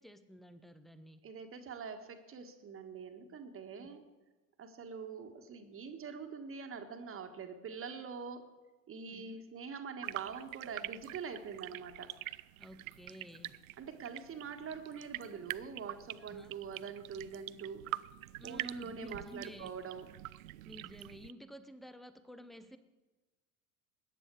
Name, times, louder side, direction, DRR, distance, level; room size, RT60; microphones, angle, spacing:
voice 1, 0.0-1.2 3.8-3.9 9.1-9.4 12.6-13.6 16.2-16.5 18.4-19.7 20.6-22.8, equal, ahead, 12 dB, 0.8 m, -52 dB
voice 2, 1.2-4.0 4.6-8.5 8.9-12.1 13.8-17.8 18.4-20.0, right 6 dB, 25° right, 6 dB, 1.6 m, -44 dB
sound 1, 10.0-21.3, right 17 dB, 60° right, 0.5 m, -45 dB
21.0 x 10.0 x 4.8 m, 1.2 s
figure-of-eight pair, 70°, 47 cm